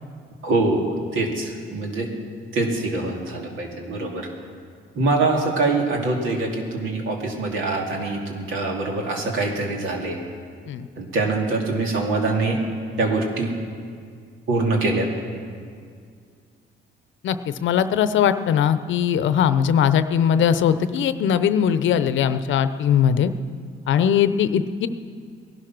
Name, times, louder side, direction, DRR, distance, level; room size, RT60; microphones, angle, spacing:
voice 1, 0.4-2.1 2.5-4.3 5.0-10.2 11.0-12.6 13.0-13.5 14.5-15.1, right 2 dB, 80° right, 0 dB, 2.7 m, -24 dB
voice 2, 17.2-23.3 23.9-24.9, left 8 dB, 75° left, 12 dB, 0.7 m, -20 dB
18.0 x 11.5 x 6.1 m, 2.1 s
cardioid pair, 90°, 20 cm